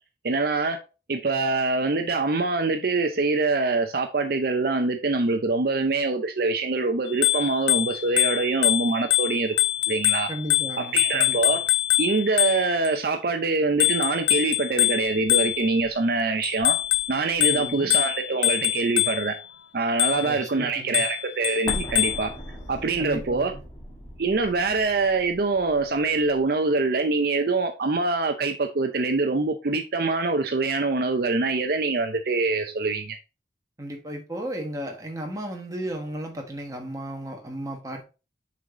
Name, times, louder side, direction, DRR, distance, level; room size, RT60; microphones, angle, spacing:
voice 1, 0.2-0.8 1.1-9.5 9.9-10.3 10.8-11.6 12.0-16.8 17.1-19.4 19.7-22.3 22.7-23.5 24.2-33.2, right 3 dB, 55° right, 0.6 m, -24 dB
Bicycle bell, 7.1-12.9 13.8-15.9 16.4-19.4 20.0-20.4 20.9-22.3, left 14 dB, 75° left, 0.4 m, -24 dB
voice 2, 10.3-11.5 17.5-17.9 20.2-21.0 23.0-23.6 33.8-38.1, right 1 dB, 20° right, 1.2 m, -35 dB
Explosion, 21.7-26.4, equal, 15° left, 1.7 m, -39 dB
6.3 x 4.0 x 3.7 m
head